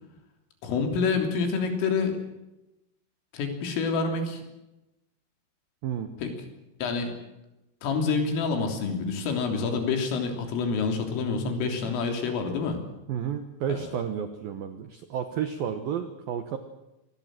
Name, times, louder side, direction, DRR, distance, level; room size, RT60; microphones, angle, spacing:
voice 1, 0.6-2.2 3.3-4.4 6.2-6.3 6.8-7.1 7.8-12.8 13.7-13.8, left 4 dB, 75° left, 4 dB, 5.8 m, -27 dB
voice 2, 13.1-16.6, right 8 dB, 80° right, 8 dB, 2.1 m, -31 dB
25.5 x 19.5 x 7.6 m, 0.93 s
omnidirectional pair, 6.0 m